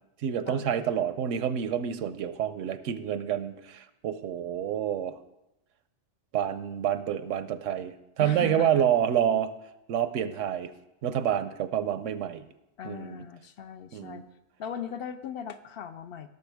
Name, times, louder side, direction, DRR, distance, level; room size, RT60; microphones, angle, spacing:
voice 1, 0.2-5.2 6.3-9.5 9.9-10.7 11.0-12.5 12.8-13.2 13.9-14.2, right 9 dB, 85° right, 12 dB, 1.0 m, -28 dB
voice 2, 8.2-8.8 12.8-14.2 14.6-16.3, left 8 dB, 65° left, 10 dB, 0.7 m, -38 dB
17.5 x 6.9 x 3.4 m, 0.91 s
omnidirectional pair, 1.2 m